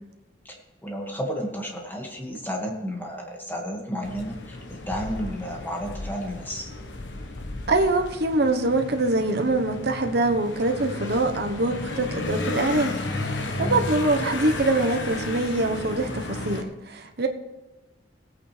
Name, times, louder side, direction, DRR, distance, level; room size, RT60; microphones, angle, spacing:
voice 1, 0.4-4.6 4.9-6.7 13.6-14.0, equal, 10° left, 0 dB, 2.0 m, -32 dB
sound 1, 4.0-16.6, left 2 dB, 70° left, 1.2 m, -33 dB
voice 2, 7.7-17.3, right 2 dB, 60° right, 4 dB, 1.2 m, -24 dB
18.5 x 8.7 x 3.4 m, 1.1 s
head